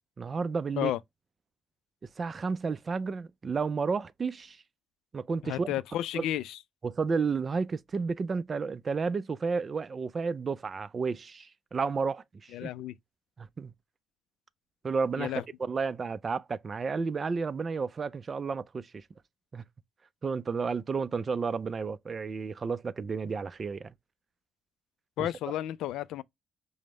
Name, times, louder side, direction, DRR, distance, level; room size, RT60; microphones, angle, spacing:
voice 1, 0.2-0.9 2.2-4.6 5.1-5.8 6.2-6.3 6.8-12.7 13.4-13.7 14.8-19.0 19.5-19.7 20.2-23.9, right 5 dB, 40° right, 0.4 m, -32 dB
voice 2, 5.4-6.6 12.5-13.0 15.2-15.4 25.2-26.2, left 13 dB, 90° left, 0.3 m, -32 dB
5.1 x 2.0 x 3.1 m
cardioid pair, 90°, 0 cm